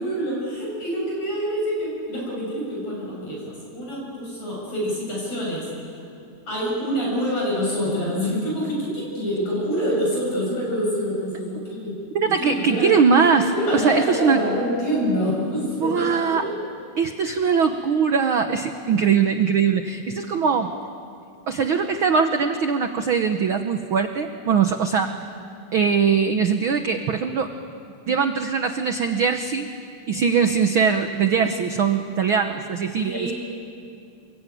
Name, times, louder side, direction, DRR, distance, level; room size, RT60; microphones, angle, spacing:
voice 1, 0.0-6.0 6.5-12.9 13.5-16.5 33.1-33.3, equal, 50° left, -4 dB, 8.5 m, -26 dB
voice 2, 12.1-14.4 15.8-16.5 17.0-20.7 21.5-25.1 25.7-27.5 28.1-29.7 30.1-33.3, right 6 dB, 80° right, 7 dB, 1.1 m, -21 dB
28.5 x 22.5 x 9.2 m, 2.5 s
omnidirectional pair, 3.7 m